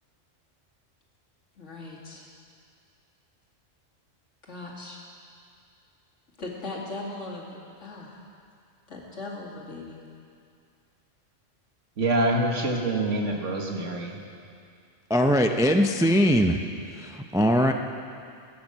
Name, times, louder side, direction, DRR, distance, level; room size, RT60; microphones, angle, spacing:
voice 1, 1.6-2.3 4.4-5.0 6.4-7.5 7.8-8.2 8.9-10.1, left 2 dB, 75° left, -3 dB, 2.7 m, -38 dB
voice 2, 12.0-14.2, right 2 dB, 80° right, 1 dB, 1.9 m, -26 dB
voice 3, 15.1-16.6 16.9-17.7, equal, 5° right, 4 dB, 0.3 m, -21 dB
16.5 x 9.6 x 7.5 m, 2.4 s
omnidirectional pair, 1.3 m